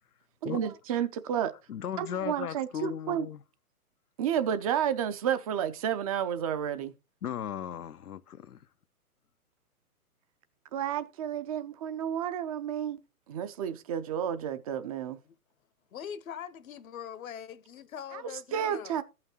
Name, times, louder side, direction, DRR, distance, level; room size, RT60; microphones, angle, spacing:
voice 1, 0.4-1.5 2.0-3.3 4.2-6.9 10.7-13.0 13.3-15.2 18.1-18.2 18.5-19.0, right 9 dB, 25° right, 0.5 m, -31 dB
voice 2, 1.7-3.4 7.2-8.7, left 9 dB, 90° left, 0.6 m, -36 dB
voice 3, 15.9-19.0, left 8 dB, 65° left, 0.9 m, -42 dB
14.5 x 5.8 x 2.9 m
figure-of-eight pair, 125°, 44 cm